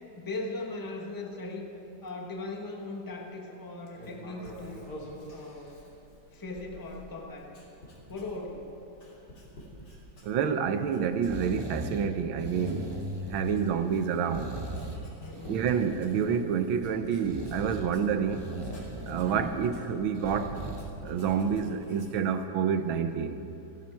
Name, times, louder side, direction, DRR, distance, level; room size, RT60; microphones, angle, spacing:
voice 1, 0.2-1.7 2.0-4.8 5.3-6.0 6.3-7.6 8.1-8.7 15.2-15.6 19.2-19.6, left 2 dB, 10° left, 0 dB, 1.2 m, -39 dB
Writing, 3.9-10.6 10.9-12.0 12.4-22.3, left 1 dB, 55° left, 3.5 m, -48 dB
voice 2, 10.2-13.0 13.3-14.5 15.5-18.4 19.1-20.6 21.0-23.4, right 7 dB, 85° right, 9 dB, 1.7 m, -28 dB
sound 1, 11.3-12.1 12.4-13.8 14.3-15.0 15.3-16.7 17.2-17.9 18.3-19.7 20.2-20.9 21.3-21.4, right 1 dB, 20° right, 0.7 m, -39 dB
27.0 x 9.7 x 4.6 m, 2.9 s
omnidirectional pair, 2.1 m